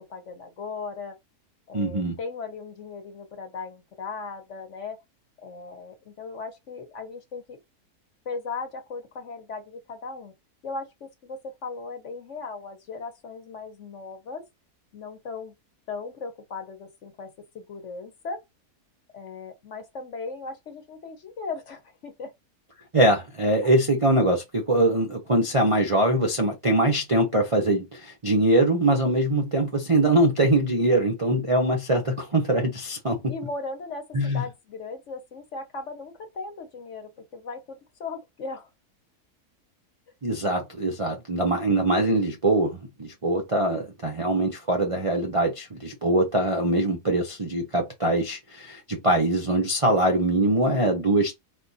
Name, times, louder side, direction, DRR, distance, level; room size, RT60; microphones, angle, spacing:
voice 1, 0.1-1.2 1.7-5.0 5.4-7.6 8.2-10.3 10.6-14.4 14.9-15.5 15.9-18.4 19.1-22.3 33.2-38.7, left 4 dB, 55° left, 1.2 m, -37 dB
voice 2, 1.7-2.2 22.9-33.3 34.1-34.4 40.2-51.4, right 1 dB, 35° right, 0.5 m, -23 dB
4.1 x 2.5 x 4.0 m
omnidirectional pair, 1.7 m